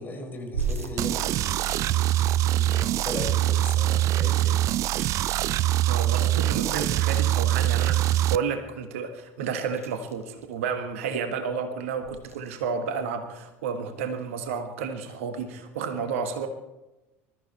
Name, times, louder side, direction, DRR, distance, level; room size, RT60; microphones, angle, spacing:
voice 1, 0.0-2.1 2.5-4.6, left 2 dB, 25° left, 3 dB, 4.4 m, -38 dB
sound 1, 0.5-3.3 3.6-3.7 3.8-6.3 6.5-8.6 9.1-11.2 11.9-12.8 13.2-13.6 13.9-14.9, right 5 dB, 85° right, 1.4 m, -39 dB
sound 2, 1.0-8.4, right 14 dB, 45° right, 0.4 m, -23 dB
voice 2, 5.9-16.5, right 6 dB, 65° right, 8 dB, 1.5 m, -31 dB
20.5 x 13.5 x 4.3 m, 1.0 s
figure-of-eight pair, 70°, 8 cm